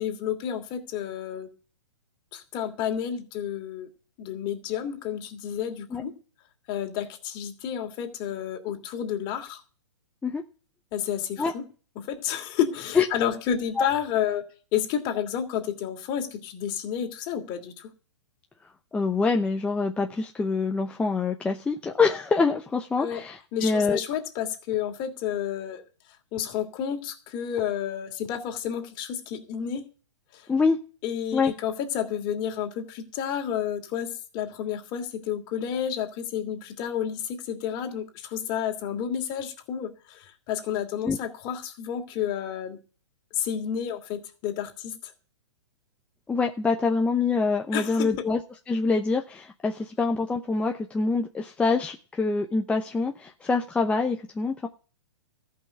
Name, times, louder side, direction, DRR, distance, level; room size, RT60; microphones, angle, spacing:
voice 1, 0.0-1.5 2.3-3.9 4.2-6.1 6.7-9.6 10.9-11.7 12.0-14.4 14.7-17.9 23.0-23.2 23.5-25.8 26.3-29.8 30.3-30.5 31.0-42.8 43.3-45.1 47.7-48.1, left 9 dB, 30° left, 4 dB, 2.8 m, -30 dB
voice 2, 18.9-24.0 30.5-30.8 31.3-31.5 41.0-41.2 46.3-48.4 48.7-54.7, left 4 dB, 10° left, 3 dB, 0.7 m, -25 dB
14.0 x 5.7 x 7.7 m, 0.39 s
hypercardioid pair, 140°, 15 cm